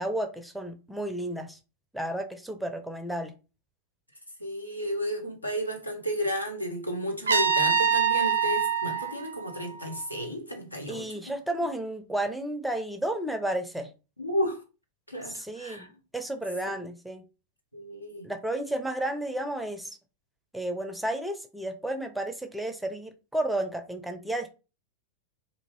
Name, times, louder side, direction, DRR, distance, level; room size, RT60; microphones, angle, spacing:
voice 1, 0.0-1.6 1.9-3.3 10.9-13.9 15.3-17.2 18.2-20.0 20.5-24.5, right 1 dB, ahead, 0.5 m, -32 dB
voice 2, 4.4-11.1 14.2-14.6 15.1-15.9 17.7-18.2, equal, 85° left, 0.8 m, -32 dB
Trumpet, 7.3-10.2, right 6 dB, 70° right, 0.4 m, -26 dB
2.6 x 2.4 x 3.1 m
figure-of-eight pair, 90°, 0 cm